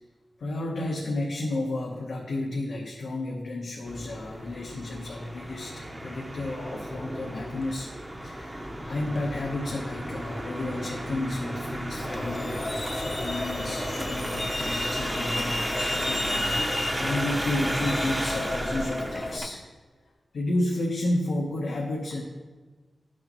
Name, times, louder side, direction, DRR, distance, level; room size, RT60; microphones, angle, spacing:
voice 1, 0.4-7.9 8.2-19.6 20.3-22.2, left 2 dB, 90° left, -2 dB, 0.9 m, -32 dB
sound 1, 3.9-19.5, right 1 dB, 15° right, 0.6 m, -34 dB
Truck, 12.0-19.4, left 1 dB, 30° left, 0.8 m, -32 dB
12.0 x 6.5 x 3.0 m, 1.3 s
wide cardioid pair, 180°, 0 cm